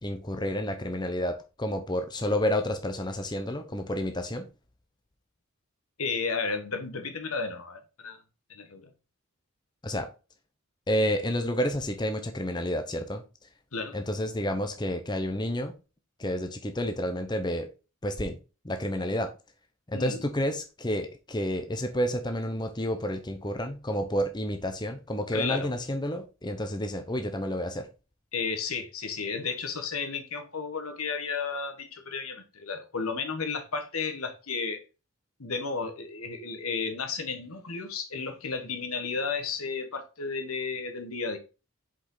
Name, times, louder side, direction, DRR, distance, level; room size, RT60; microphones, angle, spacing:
voice 1, 0.0-4.5 9.8-10.1 10.9-13.2 13.9-15.7 16.2-17.7 18.0-18.4 18.6-19.3 19.9-27.9, equal, 20° left, 0.8 m, -30 dB
voice 2, 6.0-8.2 8.5-8.9 13.7-14.0 19.9-20.2 25.3-25.7 28.3-34.8 35.4-41.4, left 5 dB, 85° left, 1.5 m, -33 dB
6.6 x 5.2 x 4.0 m
head